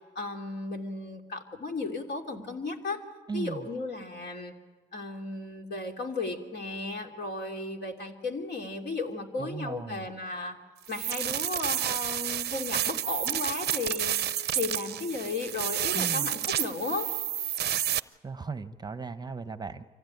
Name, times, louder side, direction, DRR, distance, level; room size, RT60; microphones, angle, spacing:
voice 1, 0.1-3.0 3.3-4.5 4.9-10.6 10.9-14.1 14.5-17.1, left 3 dB, 60° left, 3 dB, 3.0 m, -34 dB
voice 2, 3.3-3.7 9.4-10.1 15.9-16.3 18.2-19.8, right 4 dB, 20° right, 11 dB, 0.9 m, -37 dB
sound 1, 10.9-18.0, right 10 dB, 55° right, 0.6 m, -30 dB
25.0 x 16.0 x 9.3 m, 1.3 s
cardioid pair, 90°, 20 cm